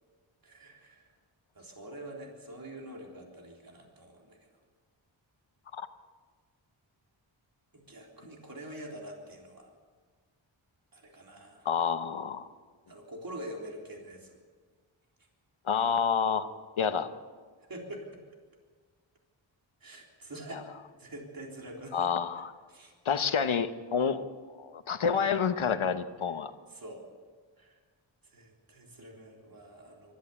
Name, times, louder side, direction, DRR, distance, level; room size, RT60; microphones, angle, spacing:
voice 1, 0.4-1.1 1.5-4.5 7.7-9.7 10.9-11.7 12.9-14.4 17.6-18.2 19.8-20.7 21.0-22.1 22.7-22.9 26.7-27.0 27.6-27.8 28.2-30.1, right 1 dB, 45° right, 0 dB, 3.8 m, -45 dB
voice 2, 11.6-12.5 15.6-16.5 16.8-17.1 20.5-20.6 21.9-22.5 23.0-26.5, left 6 dB, 80° left, 10 dB, 1.2 m, -29 dB
24.0 x 13.5 x 8.5 m, 1.5 s
wide cardioid pair, 90°, 47 cm